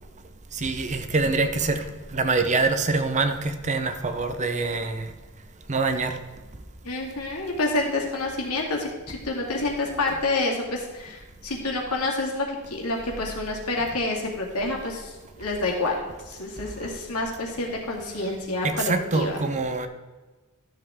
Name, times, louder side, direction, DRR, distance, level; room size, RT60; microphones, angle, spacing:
voice 1, 0.5-1.9 2.1-5.1 5.7-6.2 18.6-19.9, right 3 dB, 35° right, 8 dB, 0.7 m, -25 dB
voice 2, 6.8-16.0 16.3-19.4, left 2 dB, 75° left, 0 dB, 2.2 m, -28 dB
12.5 x 7.1 x 3.6 m, 1.3 s
head